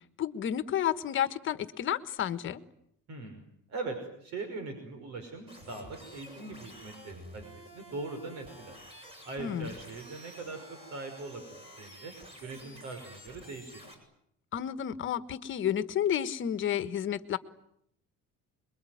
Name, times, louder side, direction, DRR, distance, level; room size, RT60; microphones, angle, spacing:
voice 1, 0.2-2.6 9.4-9.7 14.5-17.4, left 10 dB, 40° left, 12 dB, 1.4 m, -31 dB
voice 2, 3.1-7.5 7.7-8.8 9.2-12.1 12.4-13.8, right 3 dB, 65° right, 6 dB, 5.7 m, -41 dB
sound 1, 5.5-13.9, equal, 20° right, 7.4 m, -50 dB
27.0 x 22.5 x 9.4 m, 0.73 s
cardioid pair, 180°, 30 cm